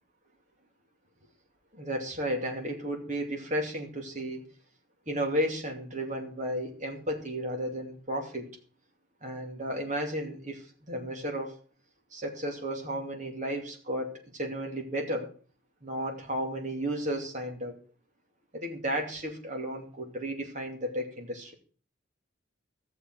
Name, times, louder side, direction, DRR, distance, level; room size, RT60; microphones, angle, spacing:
voice 1, 1.7-4.4 5.1-8.5 9.2-11.6 12.1-15.3 15.8-17.7 18.5-21.5, equal, 35° right, 2 dB, 2.6 m, -33 dB
15.5 x 6.8 x 6.2 m, 0.41 s
head